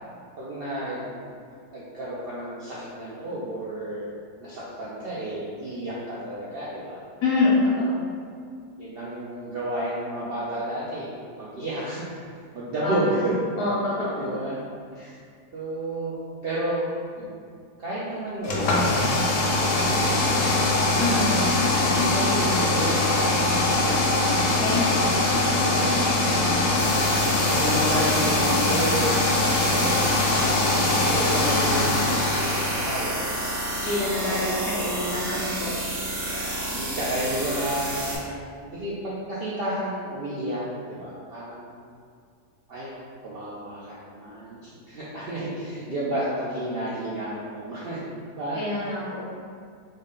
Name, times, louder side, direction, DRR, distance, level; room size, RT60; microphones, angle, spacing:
voice 1, 0.4-1.1 1.5-4.1 4.4-7.0 8.8-12.2 12.5-13.3 14.0-14.6 15.0-15.2 15.5-16.1 16.4-16.9 17.2-17.3 17.8-20.5 20.7-21.3 21.8-24.4 24.7-25.0 27.4-29.3 29.6-30.3 31.0-33.2 34.3-34.7 36.3-41.8 42.7-42.9 43.2-48.0 48.3-48.9, right 1 dB, 90° right, -8 dB, 0.5 m, -32 dB
voice 2, 7.2-8.0 12.8-13.2 13.6-14.3 15.0-15.1 21.0-21.4 21.9-22.3 24.6-25.1 25.5-25.9 33.8-35.7 48.5-49.2, left 2 dB, 85° left, -8 dB, 1.2 m, -26 dB
sound 1, 18.4-33.1, left 2 dB, 65° left, 0.8 m, -22 dB
sound 2, 26.8-38.2, right 1 dB, 60° right, 1.8 m, -30 dB
3.8 x 2.1 x 3.7 m, 2.2 s
omnidirectional pair, 1.7 m